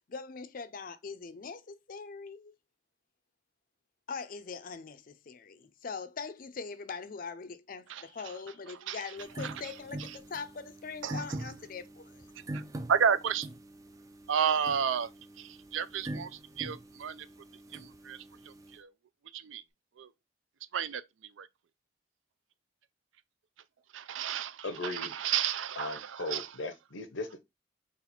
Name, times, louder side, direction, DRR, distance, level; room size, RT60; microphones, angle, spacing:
voice 1, 0.1-2.5 4.1-12.3, left 5 dB, 45° left, 0.4 m, -42 dB
sound 1, 9.2-18.8, right 1 dB, 15° right, 0.4 m, -44 dB
voice 2, 11.0-11.4 12.5-12.6 12.9-13.5 14.3-15.1 15.4-17.3 17.7-18.9 19.3-19.6 20.0-20.1 20.7-21.5 23.9-26.5, right 7 dB, 90° right, 0.4 m, -32 dB
voice 3, 24.6-25.1 25.8-27.4, left 2 dB, 85° left, 0.8 m, -37 dB
4.1 x 2.4 x 4.2 m
head